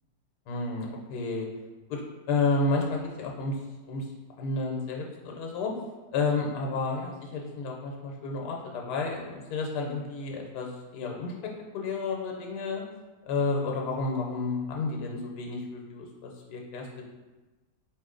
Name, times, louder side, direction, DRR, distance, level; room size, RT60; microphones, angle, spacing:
voice 1, 0.5-1.5 1.9-2.0 2.3-3.6 3.9-4.1 4.4-5.7 6.1-10.7 10.9-11.3 11.7-12.8 13.3-17.0, left 3 dB, 80° left, 0 dB, 1.2 m, -31 dB
4.3 x 3.0 x 3.7 m, 1.2 s
omnidirectional pair, 1.7 m